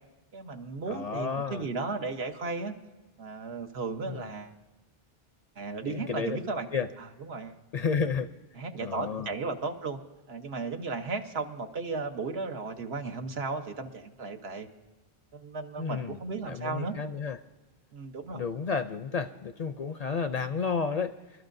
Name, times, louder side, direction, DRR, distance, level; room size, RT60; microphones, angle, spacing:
voice 1, 0.3-2.8 3.2-4.5 5.6-6.7 7.0-7.6 8.5-10.0 10.3-14.7 15.3-16.9 17.9-18.4, right 4 dB, 80° right, 5 dB, 1.3 m, -35 dB
voice 2, 0.9-1.7 4.1-4.3 5.8-6.4 6.7-6.9 7.7-8.3 8.8-9.3 15.8-16.2 16.5-17.4 18.3-21.1, left 5 dB, 50° left, 9 dB, 0.5 m, -31 dB
26.5 x 12.5 x 2.6 m, 1.1 s
omnidirectional pair, 1.0 m